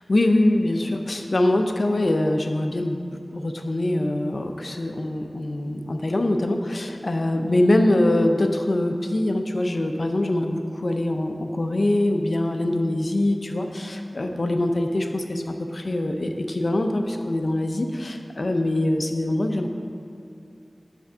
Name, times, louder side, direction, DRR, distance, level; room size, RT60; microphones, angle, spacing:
voice 1, 0.1-19.7, left 1 dB, 60° left, 5 dB, 0.6 m, -23 dB
9.1 x 3.5 x 6.1 m, 2.5 s
wide cardioid pair, 55°, 0 cm